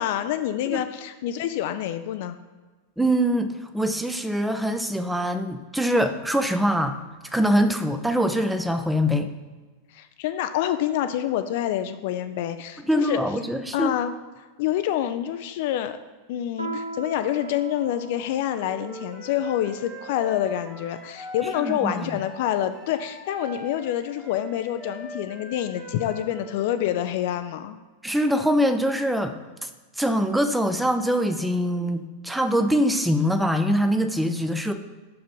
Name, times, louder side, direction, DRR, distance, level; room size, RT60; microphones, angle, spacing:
voice 1, 0.0-2.4 9.9-13.2 13.7-14.1 14.6-16.0 16.3-27.8, left 11 dB, 50° left, 10 dB, 0.4 m, -27 dB
voice 2, 3.0-7.0 7.2-9.3 12.9-13.9 21.6-22.2 28.0-29.4 29.6-29.7 30.0-34.7, equal, 5° right, 7 dB, 0.6 m, -23 dB
Piano, 16.6-21.5, right 2 dB, 90° right, 0.6 m, -40 dB
Wind instrument woodwind instrument, 18.5-26.9, equal, 20° right, 1.7 m, -41 dB
6.1 x 4.8 x 5.3 m, 1.3 s
figure-of-eight pair, 90°, 0 cm